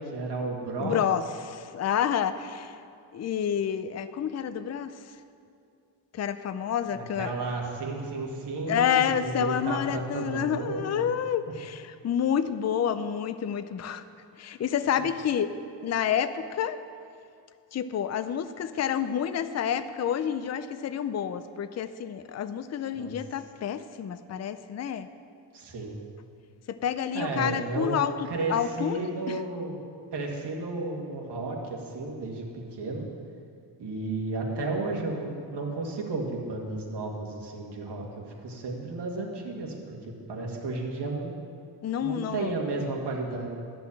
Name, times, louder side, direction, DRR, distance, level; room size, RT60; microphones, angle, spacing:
voice 1, 0.0-1.0 6.9-11.1 22.9-23.1 25.5-26.0 27.1-28.0 28.3-29.8 30.1-33.1 33.8-40.0 40.3-41.4 42.0-43.5, right 3 dB, 70° right, -1 dB, 2.2 m, -33 dB
voice 2, 0.8-2.7 3.1-4.9 6.1-7.3 8.7-14.0 14.4-15.5 15.8-16.8 17.7-25.1 26.7-28.1 28.5-29.0 29.3-29.4 41.8-42.5, left 8 dB, 40° left, 11 dB, 0.5 m, -29 dB
13.0 x 6.0 x 8.6 m, 2.5 s
cardioid pair, 115°, 43 cm